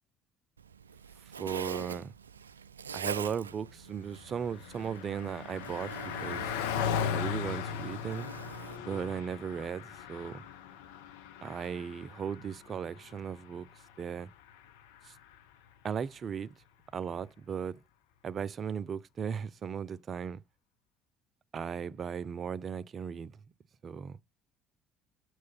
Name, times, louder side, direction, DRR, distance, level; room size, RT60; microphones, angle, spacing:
Zipper (clothing), 0.6-8.8, right 7 dB, 80° right, 0.4 m, -44 dB
voice 1, 1.4-2.1 2.9-6.5 7.1-8.3 8.8-10.4 11.4-13.7 14.0-14.3 15.1-15.2 15.8-16.5 16.9-17.8 18.2-20.4 21.5-23.3 23.8-24.2, right 7 dB, 40° right, 0.7 m, -37 dB
Car passing by, 3.8-15.5, left 8 dB, 70° left, 1.0 m, -38 dB
7.7 x 3.1 x 5.7 m
figure-of-eight pair, 55°, 0 cm